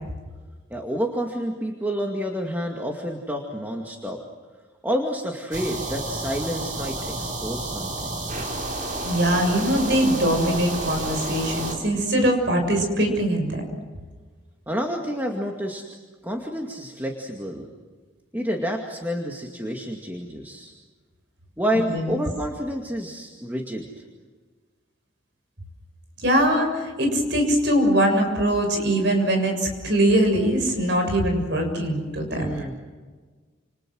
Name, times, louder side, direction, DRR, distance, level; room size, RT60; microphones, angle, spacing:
voice 1, 0.7-4.2 4.8-8.2 14.7-15.8 16.2-17.7 18.3-20.7 21.6-23.9 32.3-32.7, equal, 10° right, 1 dB, 2.2 m, -29 dB
sound 1, 5.5-11.7, right 2 dB, 40° right, 4.9 m, -30 dB
voice 2, 9.0-13.6 21.9-22.1 26.2-32.4, right 1 dB, 60° right, 4 dB, 6.9 m, -22 dB
29.5 x 28.5 x 6.4 m, 1.4 s
head